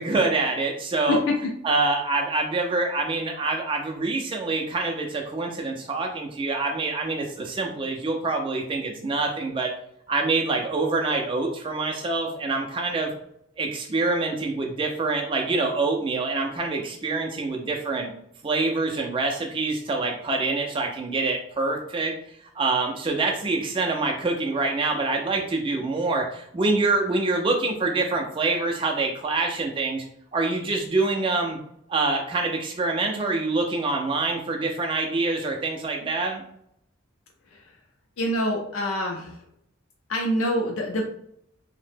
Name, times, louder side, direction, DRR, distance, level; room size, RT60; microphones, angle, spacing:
voice 1, 0.0-1.2 1.6-9.7 10.1-13.1 13.6-18.1 18.4-22.1 22.6-30.0 30.3-31.6 31.9-36.4, right 3 dB, 25° right, 2 dB, 0.3 m, -25 dB
voice 2, 38.2-39.3 40.1-41.1, left 1 dB, 90° left, 0 dB, 0.5 m, -25 dB
2.7 x 2.0 x 3.3 m, 0.72 s
head